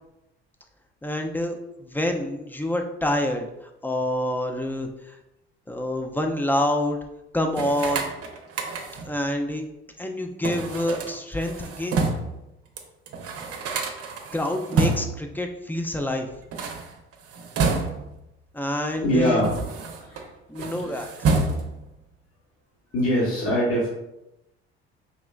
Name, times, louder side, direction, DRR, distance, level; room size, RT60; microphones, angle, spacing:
voice 1, 1.0-3.5 3.8-5.2 5.7-7.0 7.3-8.1 9.1-9.7 10.0-12.0 14.3-16.3 18.5-19.4 20.5-21.1, left 1 dB, 5° left, 4 dB, 0.5 m, -27 dB
sound 1, 7.5-9.2 10.4-12.4 12.8-12.9 13.1-15.3 16.4-18.2 18.9-20.2 20.5-21.9, right 4 dB, 50° right, 0.8 m, -28 dB
voice 2, 19.0-19.7 20.0-21.1 22.9-23.9, equal, 45° left, -6 dB, 1.5 m, -24 dB
4.9 x 3.0 x 2.3 m, 0.90 s
hypercardioid pair, 60°, 31 cm